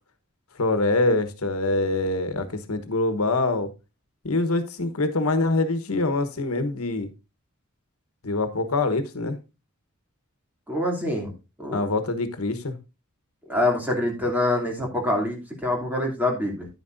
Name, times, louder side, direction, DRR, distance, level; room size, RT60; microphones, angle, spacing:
voice 1, 0.6-3.7 4.2-7.1 8.2-9.4 11.7-12.8, left 2 dB, 85° left, 10 dB, 1.2 m, -24 dB
voice 2, 10.7-11.3 11.6-11.8 13.5-16.7, left 1 dB, 10° right, 0 dB, 2.8 m, -25 dB
10.5 x 9.4 x 2.6 m, 0.27 s
head